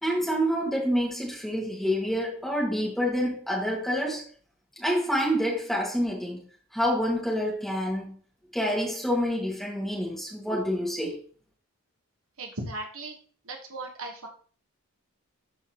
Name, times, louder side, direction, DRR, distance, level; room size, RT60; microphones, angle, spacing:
voice 1, 0.0-4.2 4.8-6.4 6.7-8.1 8.5-11.2, equal, ahead, 2.0 m, -27 dB
voice 2, 12.4-13.2 13.4-14.3, right 2 dB, 65° right, 1.5 m, -37 dB
11.5 x 4.5 x 3.0 m
head